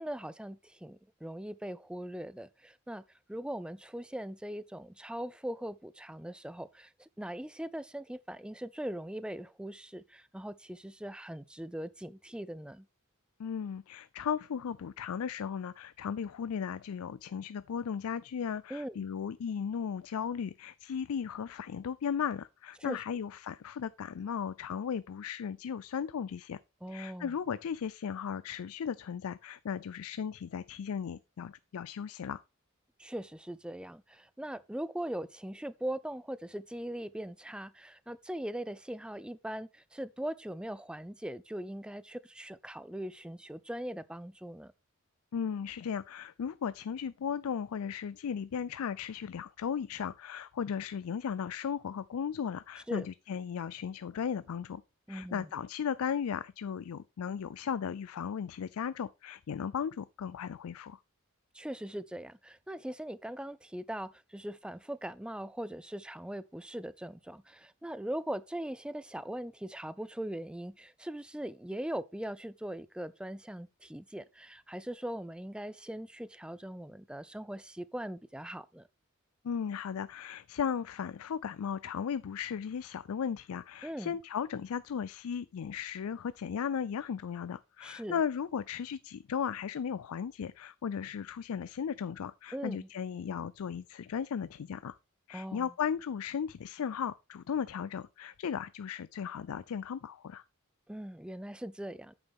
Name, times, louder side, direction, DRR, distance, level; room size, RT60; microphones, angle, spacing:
voice 1, 0.0-3.0 3.3-12.9 18.7-19.0 22.8-23.0 26.8-27.3 33.0-44.7 52.9-53.1 55.1-55.5 61.5-78.9 83.8-84.2 87.8-88.2 92.5-92.9 95.3-95.7 100.9-102.1, right 1 dB, 5° right, 0.4 m, -40 dB
voice 2, 13.4-26.6 26.9-32.4 45.3-54.8 55.1-61.0 79.4-95.0 95.3-100.4, left 7 dB, 75° left, 0.4 m, -36 dB
8.9 x 7.0 x 3.6 m
head